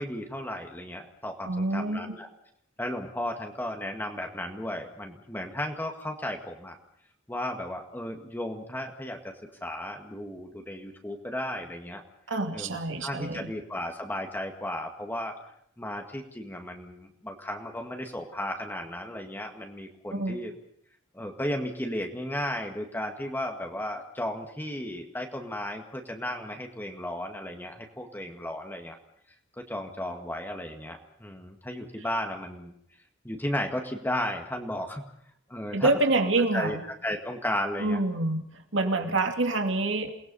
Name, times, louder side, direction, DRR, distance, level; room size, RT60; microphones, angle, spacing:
voice 1, 0.0-2.3 2.8-6.8 7.3-9.3 9.6-12.0 12.5-15.4 15.8-20.5 21.1-29.0 29.6-32.7 33.2-35.1 35.5-36.0 36.5-36.8 37.0-38.0, left 1 dB, 10° left, 3 dB, 1.9 m, -34 dB
voice 2, 1.4-2.2 12.3-13.5 20.1-20.4 35.7-36.8 37.8-38.4 38.7-40.1, right 2 dB, 70° right, 5 dB, 2.7 m, -26 dB
28.5 x 19.5 x 5.5 m, 0.71 s
head